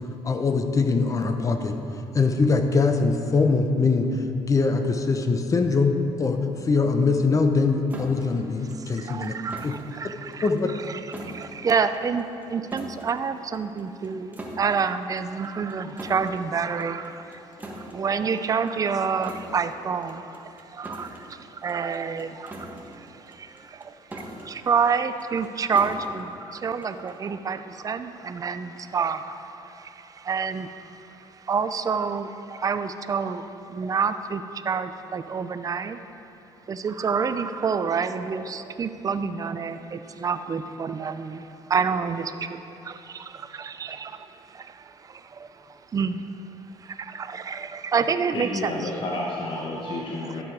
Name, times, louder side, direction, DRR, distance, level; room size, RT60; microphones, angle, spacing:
voice 1, 0.2-1.8 2.1-9.4 9.6-9.7 10.4-10.7, left 4 dB, 30° left, 6 dB, 0.8 m, -22 dB
sound 1, 7.9-27.3, right 1 dB, 15° right, 1.4 m, -43 dB
voice 2, 8.6-10.5 10.8-36.0 36.7-43.7 45.1-46.2 46.8-48.7 49.8-50.0, right 5 dB, 30° right, 10 dB, 0.5 m, -28 dB
voice 3, 48.3-50.4, left 2 dB, 50° left, -2 dB, 1.1 m, -31 dB
12.5 x 7.7 x 4.8 m, 2.9 s
cardioid pair, 100°, 11 cm